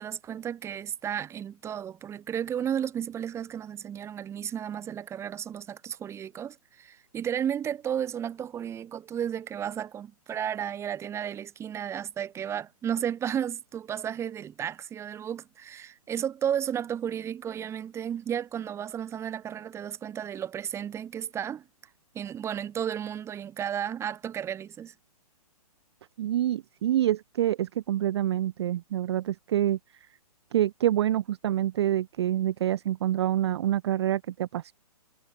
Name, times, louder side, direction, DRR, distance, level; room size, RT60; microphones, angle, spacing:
voice 1, 0.0-21.6 22.1-24.9, right 9 dB, 15° right, 1.4 m, -33 dB
voice 2, 26.2-29.8 30.5-34.7, right 12 dB, 45° right, 0.4 m, -26 dB
figure-of-eight pair, 125°, 20 cm